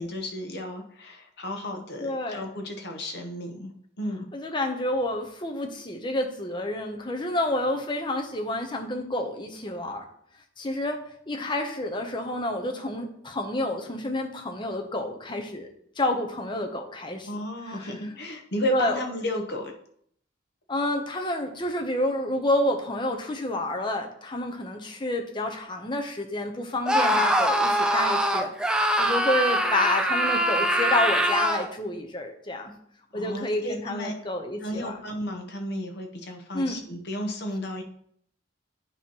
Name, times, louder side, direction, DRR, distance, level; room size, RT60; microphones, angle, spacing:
voice 1, 0.0-3.7 4.0-4.3 17.3-19.7 33.1-34.1 34.6-37.8, left 1 dB, 55° left, 4 dB, 1.0 m, -33 dB
voice 2, 2.0-2.5 4.3-10.0 10.6-15.7 16.0-17.3 17.7-17.9 18.7-19.0 20.7-32.7 33.1-35.0 36.5-36.8, left 1 dB, 25° left, 3 dB, 0.8 m, -29 dB
Screaming, 26.9-31.7, right 1 dB, 5° right, 0.4 m, -23 dB
9.0 x 3.0 x 5.4 m, 0.67 s
head